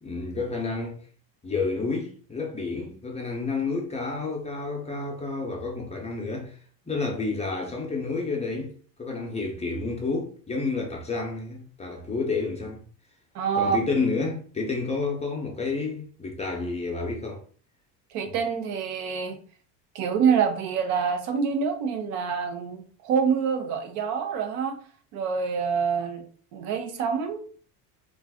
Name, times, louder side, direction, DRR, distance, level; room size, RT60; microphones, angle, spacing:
voice 1, 0.0-1.0 1.4-6.6 6.9-8.7 9.0-12.8 13.5-17.4, left 3 dB, 15° left, 0.5 m, -30 dB
voice 2, 13.3-13.8 18.1-19.4 19.9-24.8 25.1-26.2 26.5-27.4, right 6 dB, 85° right, 0.8 m, -26 dB
2.5 x 2.4 x 3.4 m
supercardioid pair, 115°, 49 cm